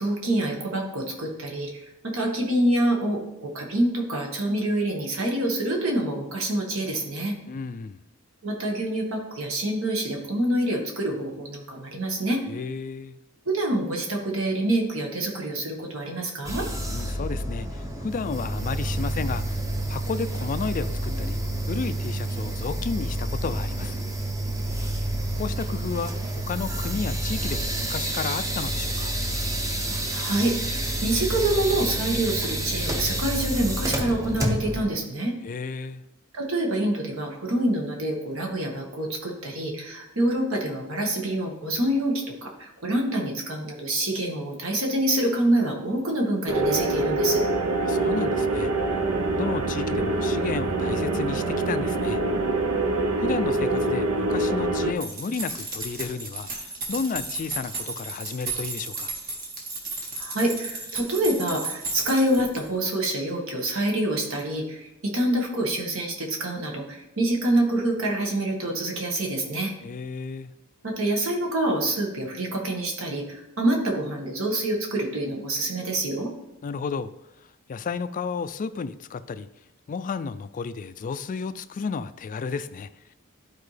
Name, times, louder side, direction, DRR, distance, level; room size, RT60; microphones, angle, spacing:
voice 1, 0.0-7.3 8.4-12.4 13.5-16.7 30.1-35.3 36.3-47.4 60.2-69.7 70.8-76.3, right 1 dB, 70° right, 1 dB, 1.5 m, -26 dB
voice 2, 7.5-8.0 12.4-13.2 16.8-21.4 21.6-24.0 25.4-29.2 35.4-36.0 47.8-48.7 49.3-52.2 53.2-59.1 69.8-70.5 76.6-77.1 77.7-79.5 79.9-82.9, left 5 dB, 40° left, 12 dB, 0.3 m, -32 dB
sound 1, 16.4-34.9, right 1 dB, 15° right, 0.7 m, -29 dB
sound 2, 46.5-54.9, right 2 dB, 85° right, 0.8 m, -25 dB
sound 3, 55.0-62.7, right 3 dB, 45° right, 1.4 m, -34 dB
11.5 x 4.5 x 3.3 m, 0.89 s
head